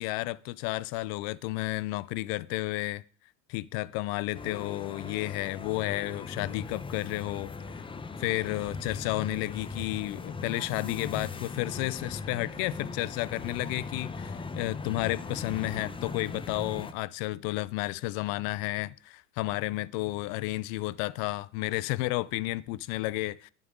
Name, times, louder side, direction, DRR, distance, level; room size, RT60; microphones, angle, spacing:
voice 1, 0.0-3.0 3.5-7.8 8.2-23.5, left 19 dB, 65° left, 0.6 m, -32 dB
sound 1, 4.3-16.9, left 4 dB, 15° left, 0.8 m, -39 dB
20.5 x 7.3 x 3.8 m
supercardioid pair, 130°, 38 cm